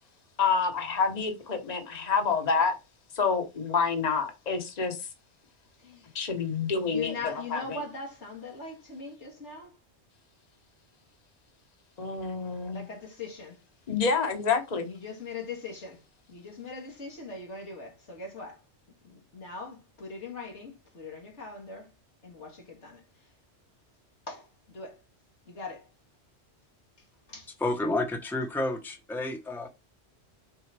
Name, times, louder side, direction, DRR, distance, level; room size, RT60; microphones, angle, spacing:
voice 1, 0.4-2.8 3.1-5.0 6.1-7.8 12.0-12.8 13.9-14.9, left 5 dB, 40° left, 1.2 m, -28 dB
voice 2, 5.8-6.1 6.8-9.8 12.7-13.6 14.8-16.0 16.3-18.6 19.0-21.9 22.2-23.3 24.3-25.0 25.5-25.9 27.0-27.5, left 4 dB, 85° left, 2.2 m, -41 dB
voice 3, 27.6-29.7, left 2 dB, ahead, 0.9 m, -30 dB
7.0 x 3.9 x 3.4 m
omnidirectional pair, 1.2 m